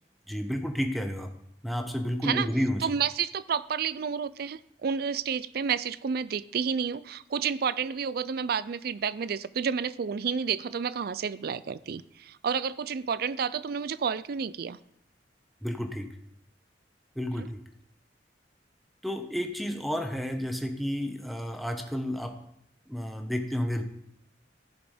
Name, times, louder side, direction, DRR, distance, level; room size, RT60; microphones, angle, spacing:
voice 1, 0.3-1.3 1.6-2.9 15.6-16.1 17.2-17.6 19.0-22.4 22.9-23.8, equal, ahead, 4 dB, 1.0 m, -31 dB
voice 2, 2.8-14.8 17.4-17.5, right 6 dB, 60° right, 18 dB, 0.4 m, -30 dB
14.0 x 6.1 x 5.0 m, 0.72 s
head